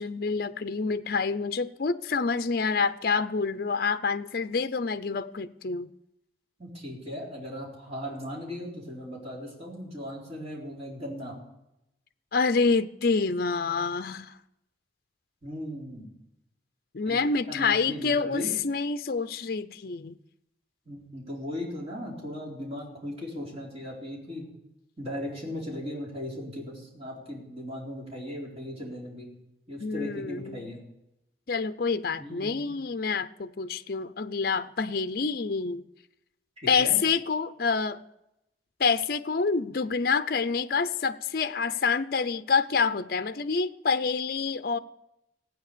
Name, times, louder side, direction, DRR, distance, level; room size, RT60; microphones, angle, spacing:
voice 1, 0.0-5.9 12.3-14.4 16.9-20.2 29.8-30.7 31.5-35.8 36.7-38.0 38.8-44.8, left 5 dB, 50° left, 0.5 m, -27 dB
voice 2, 6.6-11.3 15.4-16.1 17.0-17.2 17.5-18.5 20.9-24.5 25.0-29.3 29.7-30.8 32.2-32.7 36.8-37.0, left 1 dB, 35° right, 4.0 m, -37 dB
16.5 x 9.2 x 6.8 m
head